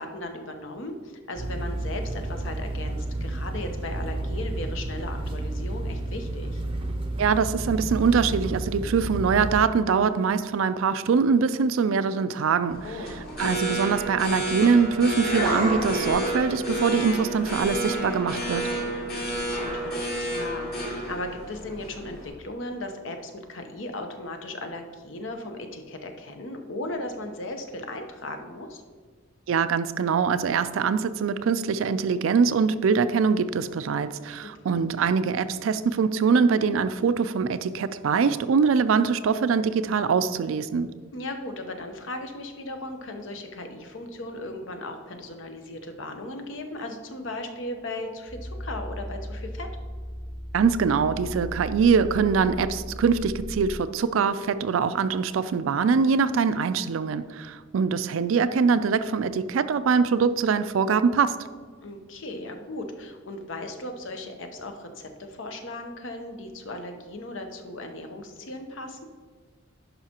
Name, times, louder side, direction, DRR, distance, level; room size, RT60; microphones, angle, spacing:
voice 1, 0.0-6.6 12.8-13.1 18.9-28.8 34.4-34.5 41.1-49.7 61.8-69.1, left 1 dB, 70° left, 5 dB, 0.8 m, -37 dB
sound 1, 1.4-9.7, right 1 dB, 25° right, 0.6 m, -31 dB
voice 2, 7.2-12.8 13.4-18.7 29.5-40.9 50.5-61.4, right 5 dB, 80° right, 13 dB, 0.4 m, -23 dB
sound 2, 12.7-22.3, right 1 dB, 50° left, 2.3 m, -30 dB
sound 3, 48.3-53.7, equal, 35° left, 1.3 m, -37 dB
10.5 x 5.5 x 2.9 m, 1.5 s
head